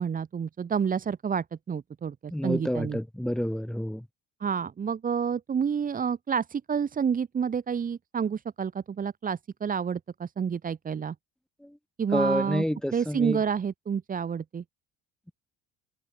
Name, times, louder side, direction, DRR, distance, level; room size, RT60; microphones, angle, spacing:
voice 1, 0.0-3.0 4.4-11.1 12.0-12.6 12.9-14.6, right 7 dB, 30° right, 1.3 m, -29 dB
voice 2, 2.3-4.1 11.6-11.8 12.1-13.4, equal, ahead, 5.4 m, -29 dB
cardioid pair, 110°, 29 cm